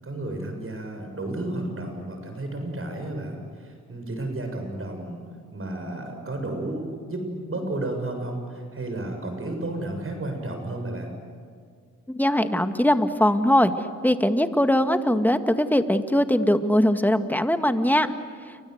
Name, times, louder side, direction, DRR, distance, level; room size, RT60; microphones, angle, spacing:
voice 1, 0.0-5.2 5.5-11.1, right 2 dB, 40° right, 4 dB, 7.2 m, -32 dB
voice 2, 12.1-13.7 14.0-18.1, left 1 dB, 5° left, 8 dB, 2.0 m, -21 dB
29.0 x 24.5 x 8.2 m, 2.1 s
cardioid pair, 60°, 33 cm